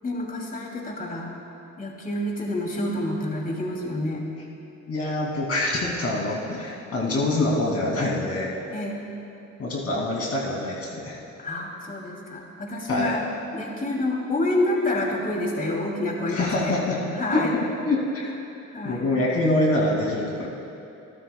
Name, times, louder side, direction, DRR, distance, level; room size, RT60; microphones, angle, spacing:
voice 1, 0.0-1.3 1.8-4.2 8.7-9.1 11.4-13.3 13.5-16.8 17.1-17.5 18.7-19.1 20.4-20.5, left 1 dB, 30° left, -2 dB, 2.8 m, -28 dB
voice 2, 4.9-8.5 9.6-11.1 12.9-13.1 16.3-17.0 17.3-17.4 17.9-18.2 18.8-20.5, left 2 dB, 50° left, -3 dB, 2.5 m, -25 dB
26.5 x 13.5 x 2.3 m, 2.8 s
cardioid pair, 90°, 30 cm